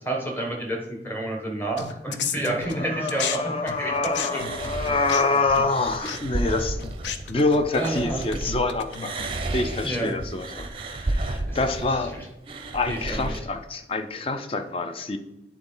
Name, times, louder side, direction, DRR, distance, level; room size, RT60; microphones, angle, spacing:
voice 1, 0.0-4.5 7.7-8.3 9.8-10.1 11.5-11.6 12.1-12.3 12.9-13.4, right 2 dB, 10° left, 1 dB, 1.1 m, -29 dB
sound 1, 1.8-3.4 3.7-9.4, left 7 dB, 85° left, 0.5 m, -34 dB
voice 2, 2.7-6.8 7.3-12.1 12.7-15.2, left 3 dB, 30° left, 7 dB, 0.5 m, -26 dB
sound 2, 4.2-8.6 8.9-13.4, right 2 dB, 30° right, 0.5 m, -32 dB
9.1 x 3.9 x 3.9 m, 0.95 s
head